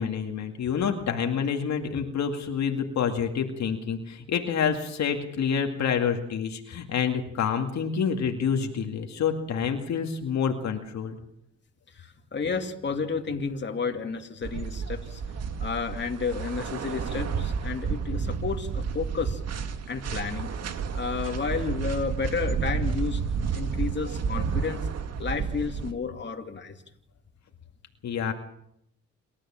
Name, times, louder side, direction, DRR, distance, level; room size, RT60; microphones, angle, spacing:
voice 1, 0.0-11.2 28.0-28.3, left 7 dB, 65° left, 4 dB, 2.2 m, -28 dB
voice 2, 11.9-15.2 15.6-19.4 19.9-20.5 20.9-23.2 23.5-24.9 25.2-26.7, left 5 dB, 35° left, 4 dB, 2.6 m, -31 dB
sound 1, 14.4-25.9, right 6 dB, 55° right, 1.9 m, -31 dB
28.0 x 13.0 x 7.5 m, 0.76 s
cardioid pair, 90°, 30 cm